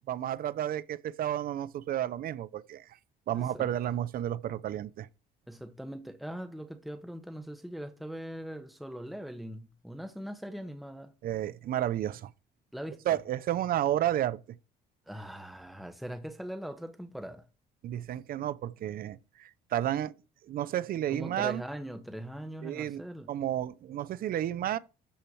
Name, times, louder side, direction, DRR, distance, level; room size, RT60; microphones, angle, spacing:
voice 1, 0.1-2.8 3.3-5.1 11.2-12.3 13.1-14.4 17.8-20.1 20.5-21.6 22.6-23.0 23.3-24.8, right 12 dB, 60° right, 0.8 m, -31 dB
voice 2, 3.3-4.0 5.5-11.1 12.7-13.0 15.1-17.5 21.1-23.3, equal, ahead, 1.1 m, -41 dB
13.0 x 4.4 x 7.1 m
cardioid pair, 110°, 17 cm